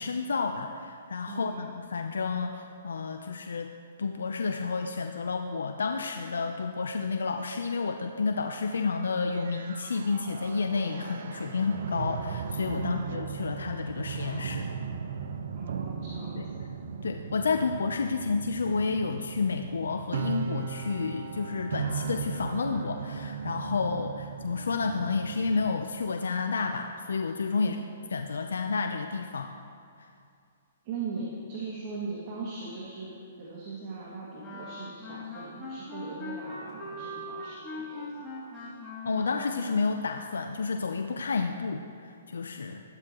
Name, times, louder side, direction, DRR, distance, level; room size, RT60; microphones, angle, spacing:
voice 1, 0.0-3.7 4.0-14.7 16.4-16.5 17.0-27.8 28.1-29.5 39.0-42.8, left 4 dB, 85° left, 5 dB, 0.6 m, -30 dB
voice 2, 1.3-1.7 12.8-13.2 15.5-16.6 27.6-27.9 30.8-33.1 33.4-38.6, right 4 dB, 45° right, -5 dB, 2.2 m, -39 dB
sound 1, 9.3-25.7, right 6 dB, 65° right, 0.8 m, -37 dB
sound 2, 34.4-40.1, left 1 dB, 5° left, 2.9 m, -41 dB
13.0 x 12.5 x 3.0 m, 2.4 s
hypercardioid pair, 145°, 0 cm